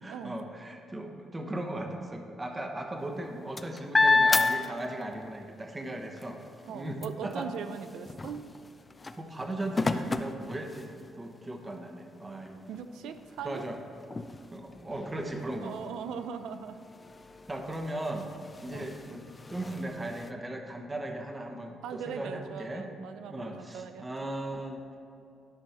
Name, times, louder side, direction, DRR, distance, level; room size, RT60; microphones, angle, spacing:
voice 1, 0.0-6.4 6.7-7.5 9.2-10.9 11.1-12.6 13.4-13.8 14.5-15.8 17.5-18.3 18.6-19.2 19.5-22.9 23.2-25.0, right 1 dB, 20° right, 3 dB, 1.0 m, -37 dB
sound 1, 3.0-5.4 5.8-11.2 11.9-12.0 12.3-20.3, left 3 dB, 25° left, 0.4 m, -32 dB
voice 2, 6.7-8.4 12.7-13.7 15.6-16.9 18.7-18.9 21.8-24.1, right 7 dB, 85° right, 9 dB, 0.5 m, -40 dB
11.5 x 5.3 x 4.3 m, 2.7 s
cardioid pair, 90°, 0 cm